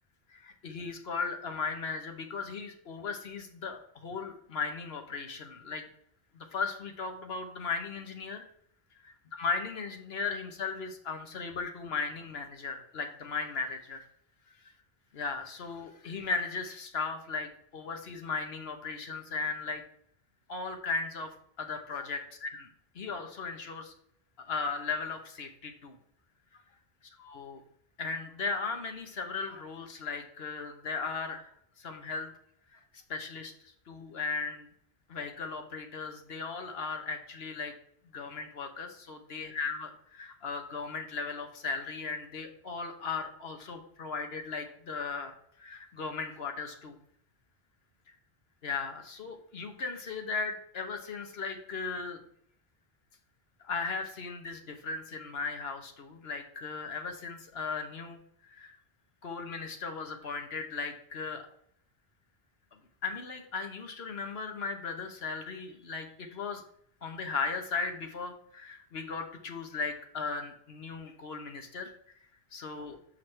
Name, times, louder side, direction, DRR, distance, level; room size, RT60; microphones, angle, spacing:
voice 1, 0.3-5.8 6.3-8.5 9.4-14.0 15.1-19.8 20.5-21.3 21.6-22.5 22.9-23.9 24.4-26.0 27.3-27.6 28.0-31.5 31.8-32.3 32.7-32.8 33.1-33.5 33.9-34.7 35.1-37.7 38.1-47.0 48.6-52.2 53.6-58.8 59.2-61.4 63.0-66.6 67.0-71.9 72.5-73.0, left 4 dB, 75° left, 5 dB, 1.2 m, -37 dB
6.4 x 6.0 x 3.2 m, 0.68 s
omnidirectional pair, 1.1 m